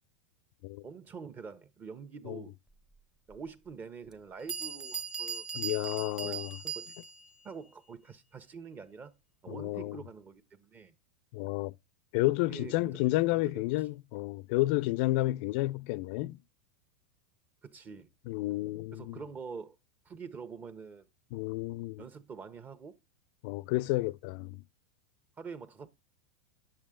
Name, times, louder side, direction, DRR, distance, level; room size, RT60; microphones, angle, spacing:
voice 1, 0.8-2.5 3.3-5.8 6.2-6.9 7.4-9.1 9.4-10.9 12.4-13.6 17.6-18.1 18.9-19.8 20.0-21.1 22.0-22.9 25.4-25.9, right 5 dB, 25° right, 1.2 m, -46 dB
Bell, 3.3-3.4 4.1-4.2 4.5-7.3, right 6 dB, 10° right, 0.9 m, -38 dB
voice 2, 5.5-6.6 9.5-10.0 11.3-11.7 12.1-16.4 18.3-19.2 21.3-22.0 23.4-24.6, left 19 dB, 60° left, 0.4 m, -31 dB
10.5 x 6.9 x 3.7 m
hypercardioid pair, 110°, 7 cm